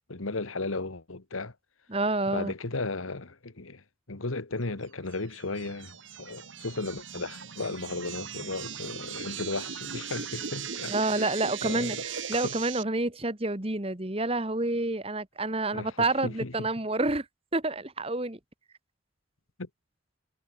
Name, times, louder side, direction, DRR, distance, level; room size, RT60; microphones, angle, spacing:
voice 1, 0.1-1.5 2.3-11.3 11.6-12.0 12.3-12.6 15.7-16.7 19.6-19.7, left 3 dB, 90° left, 1.7 m, -35 dB
voice 2, 1.9-2.5 10.9-17.2 17.5-18.4, right 2 dB, 30° right, 1.5 m, -29 dB
sound 1, 5.1-12.8, right 7 dB, 70° right, 2.4 m, -38 dB
head